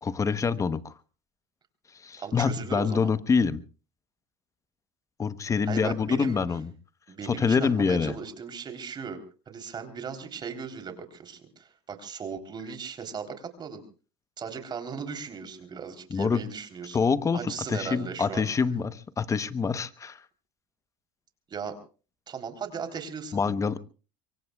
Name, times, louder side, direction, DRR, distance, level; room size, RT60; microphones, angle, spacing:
voice 1, 0.0-0.9 2.0-3.6 5.2-6.7 7.3-8.1 16.1-16.4 16.9-20.2 23.3-23.8, left 5 dB, 25° left, 15 dB, 1.0 m, -26 dB
voice 2, 2.2-3.1 5.6-6.4 7.1-9.2 9.5-13.8 14.4-18.5 21.5-21.8 22.3-23.5, right 6 dB, 35° right, 6 dB, 3.6 m, -37 dB
25.0 x 23.5 x 2.3 m, 0.36 s
supercardioid pair, 100°, 13 cm